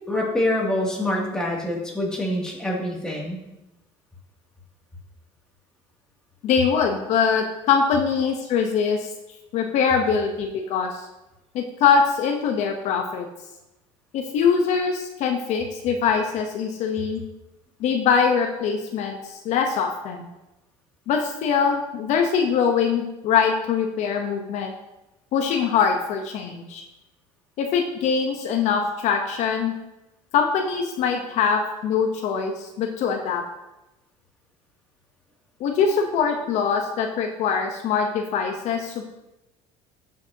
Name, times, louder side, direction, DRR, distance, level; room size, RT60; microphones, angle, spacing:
voice 1, 0.1-3.4, left 1 dB, 5° left, -4 dB, 2.6 m, -25 dB
voice 2, 6.4-9.1 9.5-11.1 11.5-13.3 14.1-17.2 17.8-20.2 21.1-24.7 25.3-26.8 27.6-29.7 30.3-33.4 35.6-39.1, left 6 dB, 60° left, 3 dB, 1.0 m, -23 dB
13.5 x 6.4 x 2.9 m, 0.97 s
cardioid pair, 120°, 13 cm